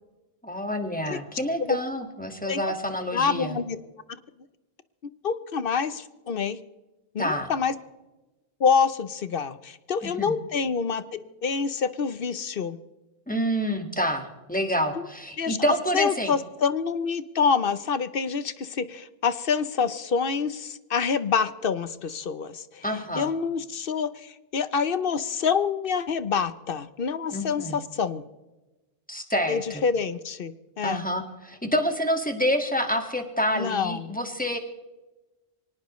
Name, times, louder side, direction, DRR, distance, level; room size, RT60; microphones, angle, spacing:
voice 1, 0.4-3.6 7.2-7.5 10.0-10.3 13.3-16.3 22.8-23.3 27.3-27.8 29.1-29.8 30.8-34.6, equal, 5° left, 4 dB, 1.8 m, -28 dB
voice 2, 3.1-3.8 5.2-6.6 7.1-7.7 8.6-11.0 11.4-12.8 14.9-15.1 15.4-15.6 15.9-22.8 23.1-28.2 29.5-31.0 33.6-34.1, left 6 dB, 55° left, 13 dB, 0.9 m, -26 dB
24.0 x 18.5 x 3.1 m, 1.1 s
omnidirectional pair, 1.2 m